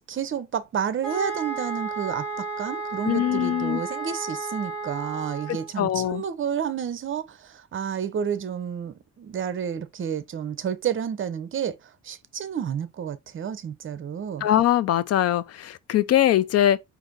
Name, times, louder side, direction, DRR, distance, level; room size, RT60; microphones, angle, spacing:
voice 1, 0.0-11.8 12.0-14.5, right 8 dB, 40° right, 0.7 m, -30 dB
sound 1, 1.0-5.7, right 3 dB, 5° left, 3.4 m, -33 dB
voice 2, 3.1-3.8 5.5-6.2 14.4-16.8, left 12 dB, 55° left, 0.4 m, -22 dB
4.9 x 2.6 x 3.9 m
cardioid pair, 130°, 30 cm